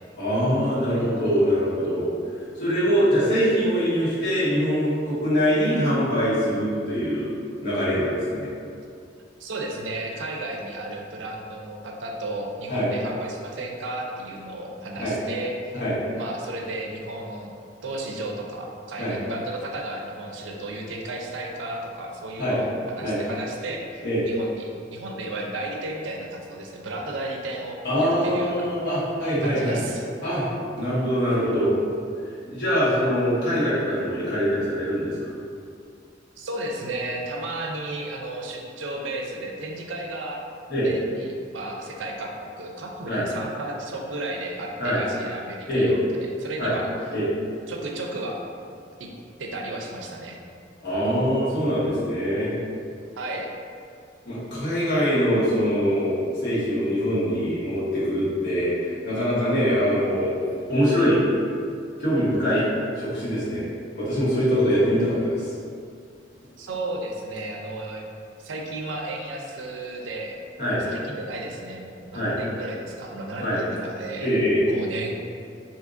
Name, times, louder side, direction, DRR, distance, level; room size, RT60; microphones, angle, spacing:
voice 1, 0.2-2.0 2.5-7.3 7.6-8.5 12.7-12.9 15.0-15.1 15.8-16.0 19.0-19.1 22.4-22.6 23.0-23.2 24.0-24.2 27.8-29.8 30.2-30.4 30.8-31.7 32.4-35.3 40.7-40.9 43.1-43.2 44.8-45.0 45.7-45.9 46.6-46.7 47.1-47.3 50.8-52.5 54.2-60.3 60.7-61.2 62.0-62.6 63.0-63.7 64.0-65.5 70.6-70.8 72.1-72.3 73.4-73.6 74.2-74.6, equal, 65° left, -10 dB, 1.1 m, -23 dB
voice 2, 9.4-15.8 16.2-17.5 17.8-28.7 29.4-30.1 36.4-40.4 40.8-46.0 46.4-46.9 47.7-48.4 49.0-49.1 49.4-50.4 53.2-53.5 66.6-68.0 68.4-70.4 70.9-74.4 74.7-75.1, right 2 dB, 80° right, 1 dB, 0.4 m, -33 dB
3.6 x 2.7 x 2.4 m, 2.4 s
head